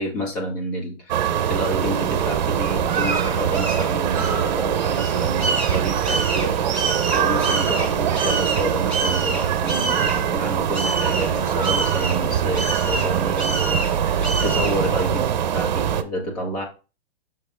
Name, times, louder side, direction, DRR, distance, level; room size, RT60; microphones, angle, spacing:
voice 1, 0.0-16.6, equal, 35° left, 0 dB, 2.1 m, -29 dB
sound 1, 1.1-16.0, right 9 dB, 45° right, 0.8 m, -23 dB
sound 2, 1.5-15.4, right 2 dB, 5° left, 0.4 m, -30 dB
6.1 x 5.5 x 3.6 m, 0.33 s
hypercardioid pair, 165°, 31 cm